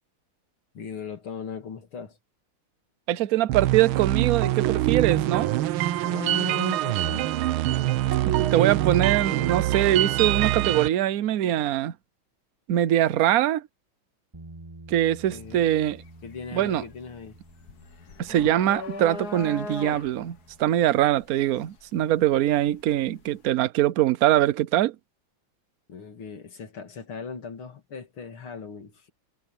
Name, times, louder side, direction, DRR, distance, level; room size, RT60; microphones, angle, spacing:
voice 1, 0.7-2.2 6.0-7.3 15.3-15.7 16.2-17.4 25.9-29.1, left 6 dB, 80° left, 3.5 m, -38 dB
voice 2, 3.1-5.5 8.3-11.9 12.7-13.6 14.9-16.0 16.5-16.8 18.2-24.9, right 12 dB, 65° right, 0.9 m, -23 dB
sound 1, 3.5-10.9, right 14 dB, 85° right, 1.6 m, -24 dB
Bass guitar, 14.3-20.6, right 2 dB, 15° right, 1.9 m, -49 dB
sound 2, 15.3-15.5 15.9-22.9, left 3 dB, 50° left, 2.0 m, -39 dB
omnidirectional pair, 2.3 m